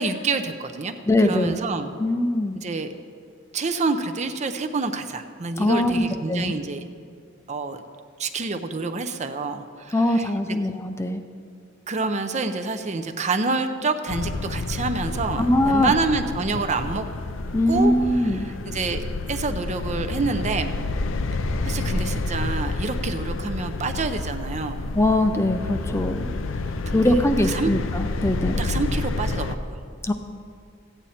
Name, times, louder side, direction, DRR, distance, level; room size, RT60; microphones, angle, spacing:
voice 1, 0.0-1.9 2.5-2.9 3.5-6.9 7.5-7.8 8.2-10.3 11.9-17.0 17.7-20.8 21.6-24.8 26.9-27.7 28.6-29.6, right 3 dB, 35° right, 7 dB, 0.6 m, -27 dB
voice 2, 1.1-1.6 2.0-2.6 5.6-6.5 9.9-11.2 15.4-15.9 17.5-18.5 24.9-26.3 26.9-28.6 30.0-30.1, left 1 dB, 15° left, 7 dB, 0.5 m, -22 dB
sound 1, 14.1-29.6, left 2 dB, 85° left, 0.6 m, -29 dB
14.5 x 9.0 x 4.3 m, 2.2 s
head